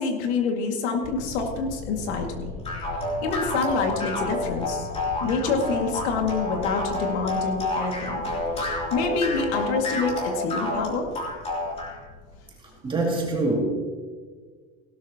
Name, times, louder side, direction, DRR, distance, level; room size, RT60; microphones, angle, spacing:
voice 1, 0.0-2.5 3.2-4.9 5.2-8.2 8.9-11.1, left 4 dB, 85° left, 2 dB, 2.2 m, -27 dB
sound 1, 1.0-12.4, left 3 dB, 60° left, 3.2 m, -40 dB
sound 2, 2.6-12.0, left 2 dB, 20° left, 3.1 m, -29 dB
voice 2, 12.8-13.6, right 2 dB, 15° right, -2 dB, 2.5 m, -24 dB
17.0 x 12.5 x 2.9 m, 1.5 s
cardioid pair, 165°, 32 cm